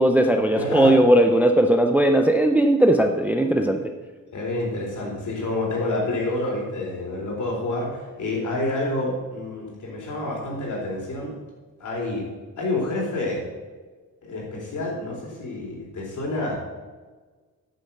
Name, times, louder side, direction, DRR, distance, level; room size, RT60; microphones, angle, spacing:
voice 1, 0.0-3.8, right 1 dB, 5° right, 5 dB, 0.5 m, -18 dB
voice 2, 0.6-1.0 4.3-11.3 11.8-12.3 12.6-13.5 14.2-16.6, left 2 dB, 60° left, -2 dB, 4.0 m, -28 dB
9.2 x 7.1 x 7.2 m, 1.4 s
wide cardioid pair, 160°, 34 cm